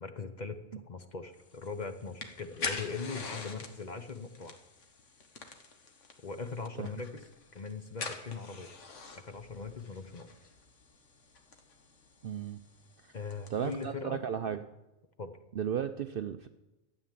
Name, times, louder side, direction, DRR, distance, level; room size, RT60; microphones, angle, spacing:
voice 1, 0.0-4.6 6.2-7.2 7.5-8.7 9.1-10.3 13.1-14.2 15.2-15.3, left 4 dB, 40° left, 8 dB, 0.9 m, -40 dB
sound 1, 1.4-13.9, left 4 dB, 65° left, 1.7 m, -45 dB
voice 2, 12.2-12.6 13.0-13.1 13.5-14.6 15.6-16.5, right 8 dB, 60° right, 9 dB, 0.6 m, -34 dB
13.0 x 9.1 x 7.4 m, 1.0 s
omnidirectional pair, 1.4 m